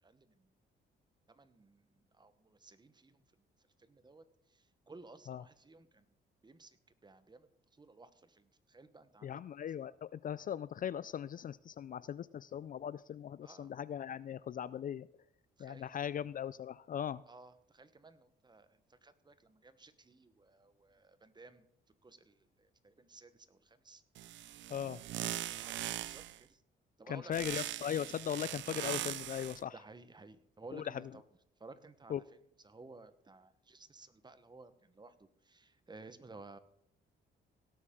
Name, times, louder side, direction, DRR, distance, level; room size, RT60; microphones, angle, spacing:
voice 1, 0.0-0.5 1.3-1.9 2.1-3.2 3.8-6.0 6.4-9.3 13.4-13.7 15.6-16.1 17.3-21.7 22.0-24.0 25.5-26.6 27.0-27.6 29.7-31.2 31.6-32.4 32.6-36.6, right 3 dB, 20° right, 13 dB, 1.1 m, -56 dB
voice 2, 9.2-15.1 15.6-17.2 24.7-25.0 27.1-29.7 30.7-30.8 32.1-32.2, left 9 dB, 45° left, 18 dB, 0.4 m, -39 dB
sound 1, 24.2-26.4 27.3-29.6, right 13 dB, 70° right, 0.5 m, -40 dB
17.5 x 8.5 x 3.7 m, 0.75 s
cardioid pair, 90°, 20 cm